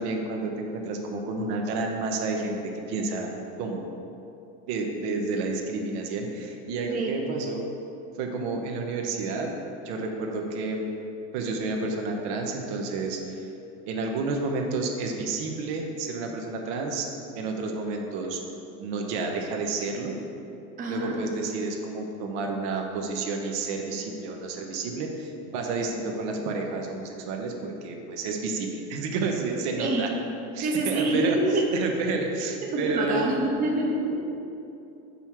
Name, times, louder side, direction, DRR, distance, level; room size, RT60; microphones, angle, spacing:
voice 1, 0.0-2.6 2.9-3.3 3.6-3.9 4.7-7.7 8.2-9.5 9.8-11.0 11.3-13.4 13.8-17.1 17.3-18.4 18.8-20.1 20.9-30.1 30.5-31.4 31.7-33.3, right 3 dB, 70° right, 2 dB, 1.0 m, -30 dB
voice 2, 6.7-7.2 20.8-21.2 29.8-30.1 30.6-31.8 32.6-34.2, right 2 dB, 25° right, -1 dB, 0.8 m, -26 dB
6.0 x 5.5 x 4.5 m, 2.7 s
supercardioid pair, 135°, 35 cm